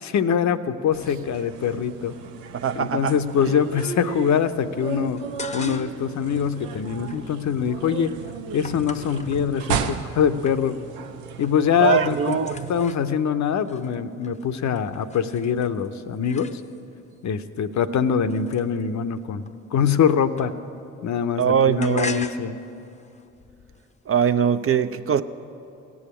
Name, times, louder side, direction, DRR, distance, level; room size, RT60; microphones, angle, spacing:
voice 1, 0.0-2.1 2.7-5.2 5.5-8.1 8.5-10.8 11.4-12.4 12.7-16.5 17.2-19.4 19.7-20.5 21.0-22.6, left 7 dB, 55° left, 0.7 m, -23 dB
sound 1, 0.9-12.8, right 6 dB, 80° right, 0.7 m, -34 dB
voice 2, 2.5-3.2 11.8-12.7 21.4-22.2 24.1-25.2, right 8 dB, 40° right, 0.6 m, -22 dB
sound 2, 5.2-6.1 6.5-10.0 10.4-11.0 11.2-11.7 11.9-17.0 17.6-20.9 21.2-24.3, left 3 dB, 20° left, 0.7 m, -41 dB
16.5 x 7.1 x 8.5 m
hypercardioid pair, 40°, 35 cm